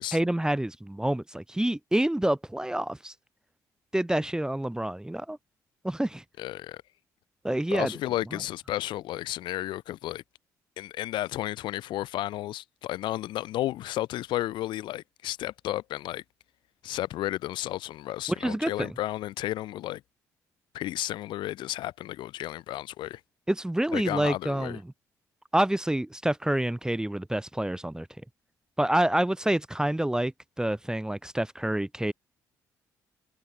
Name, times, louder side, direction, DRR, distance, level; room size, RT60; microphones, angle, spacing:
voice 1, 0.1-3.1 3.9-5.4 5.8-6.2 7.4-7.9 18.4-18.9 23.5-24.8 25.5-28.1 28.8-32.1, right 1 dB, 10° right, 1.1 m, -27 dB
voice 2, 6.4-6.8 7.7-10.2 10.8-16.2 16.8-20.0 20.7-23.2 23.9-24.8, left 14 dB, 75° left, 2.5 m, -33 dB
hypercardioid pair, 50°, 8 cm